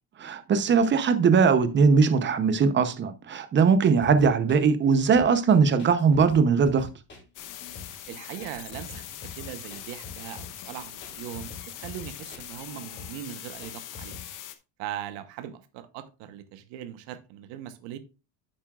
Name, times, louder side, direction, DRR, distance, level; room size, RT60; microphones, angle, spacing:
voice 1, 0.2-6.9, right 5 dB, 25° right, 0.7 m, -20 dB
sound 1, 4.0-14.3, left 4 dB, 25° left, 2.6 m, -45 dB
sound 2, 7.4-14.6, left 11 dB, 45° left, 0.9 m, -42 dB
voice 2, 8.1-9.1 9.4-14.2 14.8-18.0, right 11 dB, 80° right, 1.1 m, -40 dB
9.4 x 7.5 x 2.4 m
cardioid pair, 145°, 43 cm